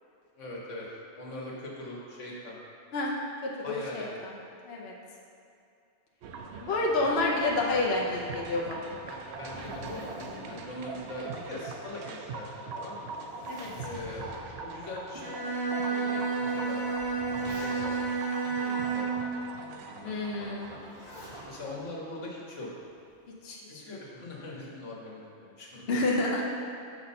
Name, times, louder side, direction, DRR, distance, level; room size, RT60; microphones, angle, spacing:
voice 1, 0.4-0.9 1.2-2.6 3.6-4.1 7.0-7.2 9.1-13.1 13.8-14.3 14.6-15.4 15.8-16.8 17.6-18.0 18.3-19.3 19.6-20.8 21.4-22.7 23.7-26.0, left 1 dB, 85° left, -3 dB, 1.5 m, -42 dB
voice 2, 3.4-4.3 4.7-4.9 6.6-8.9 13.5-13.7 20.0-20.7 23.4-24.0 25.9-26.5, left 2 dB, 60° left, -2 dB, 0.9 m, -29 dB
sound 1, 6.2-21.8, right 4 dB, 70° right, 0.8 m, -42 dB
Zipper (clothing), 9.0-11.9 12.3-12.4 12.9-14.8 15.5-15.6 16.6-18.2 20.6-21.5 22.9-23.4, left 1 dB, 40° left, 1.3 m, -46 dB
Bowed string instrument, 15.1-19.3, right 4 dB, 25° right, 0.6 m, -31 dB
6.5 x 5.8 x 4.2 m, 2.5 s
omnidirectional pair, 1.2 m